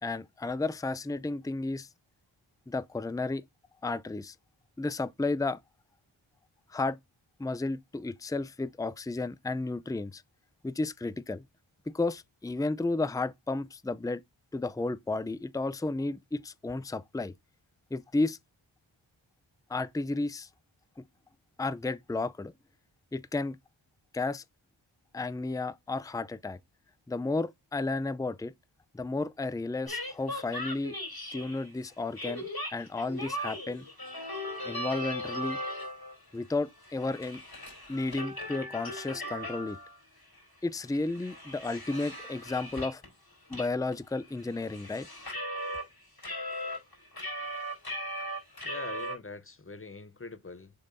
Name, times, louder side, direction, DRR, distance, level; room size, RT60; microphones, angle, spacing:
voice 1, 0.0-1.9 2.7-3.4 3.8-4.3 4.8-5.6 6.7-7.0 7.4-10.2 10.6-11.4 11.9-14.2 14.5-17.3 17.9-18.4 19.7-20.5 21.6-22.5 23.1-23.6 24.1-24.4 25.1-26.6 27.1-28.5 28.9-30.9 31.3-32.4 32.7-33.9 34.6-35.6 36.3-37.4 37.9-39.8 40.6-43.0 43.5-45.1, left 3 dB, 5° left, 0.5 m, -32 dB
sound 1, 29.9-31.7 32.2-36.2 36.5-40.0 40.3-40.4 40.8-43.1 43.5-43.7 43.9-45.9 46.2-49.2, equal, 45° left, 3.5 m, -38 dB
voice 2, 48.6-50.7, left 3 dB, 25° left, 0.9 m, -43 dB
6.9 x 5.5 x 2.7 m
wide cardioid pair, 45°, 50 cm